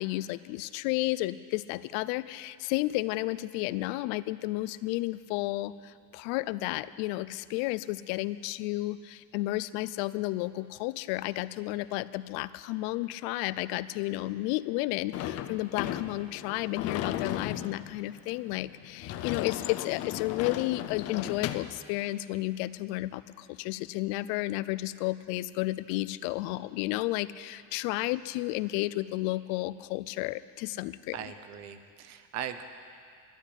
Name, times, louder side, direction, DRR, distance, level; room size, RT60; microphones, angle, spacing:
voice 1, 0.0-31.3, left 18 dB, 90° left, 16 dB, 0.5 m, -32 dB
Sliding door / Slam, 15.1-21.8, left 12 dB, 40° left, 0.5 m, -36 dB
voice 2, 31.1-32.6, right 9 dB, 45° right, 9 dB, 0.7 m, -39 dB
12.0 x 8.3 x 9.8 m, 2.2 s
cardioid pair, 175°, 38 cm